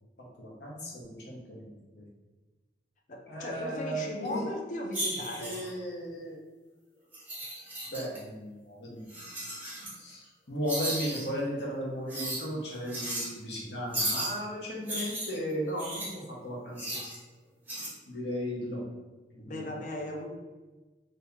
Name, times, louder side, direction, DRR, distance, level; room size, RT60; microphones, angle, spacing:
voice 1, 0.4-2.0 3.3-4.4 5.4-6.4 7.9-9.0 10.0-17.0 18.1-18.8 19.3-19.7, equal, 75° left, -3 dB, 0.9 m, -36 dB
voice 2, 3.1-5.6 19.5-20.3, left 1 dB, 45° left, 2 dB, 0.5 m, -37 dB
sound 1, 4.9-5.7 7.1-8.2 9.1-10.0 10.7-11.3 12.1-12.4 12.9-13.3 13.9-14.3 14.9-16.1 16.8-17.2 17.7-17.9, right 1 dB, 10° right, 0.7 m, -35 dB
2.8 x 2.6 x 3.5 m, 1.2 s
head